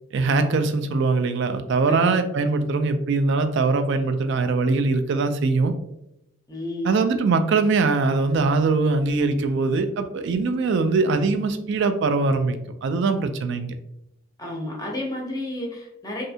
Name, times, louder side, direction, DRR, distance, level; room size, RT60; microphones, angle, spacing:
voice 1, 0.1-5.7 6.8-13.7, right 3 dB, 55° right, 8 dB, 0.3 m, -22 dB
voice 2, 1.9-2.2 6.5-7.0 14.4-16.2, left 1 dB, 15° left, -1 dB, 0.6 m, -31 dB
3.2 x 2.6 x 2.7 m, 0.84 s
head